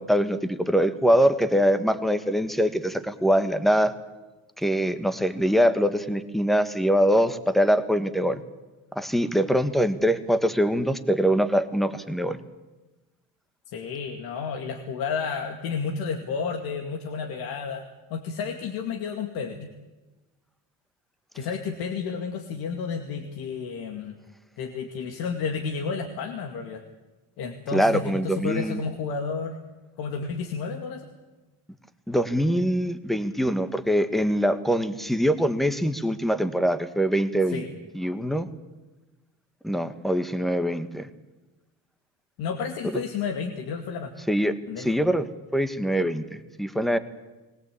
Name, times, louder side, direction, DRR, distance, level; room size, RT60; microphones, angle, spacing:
voice 1, 0.0-3.9 4.6-8.4 8.9-12.4 27.7-28.8 32.1-37.6 37.9-38.5 39.6-41.1 42.8-43.0 44.3-45.3 45.5-47.0, equal, ahead, 10 dB, 1.5 m, -23 dB
voice 2, 13.7-17.8 18.1-19.7 21.3-24.2 24.6-26.8 27.4-29.6 30.0-31.1 37.5-37.7 42.4-44.1 44.7-45.0, left 5 dB, 75° left, 3 dB, 2.4 m, -31 dB
21.5 x 17.5 x 8.5 m, 1.2 s
supercardioid pair, 95°, 36 cm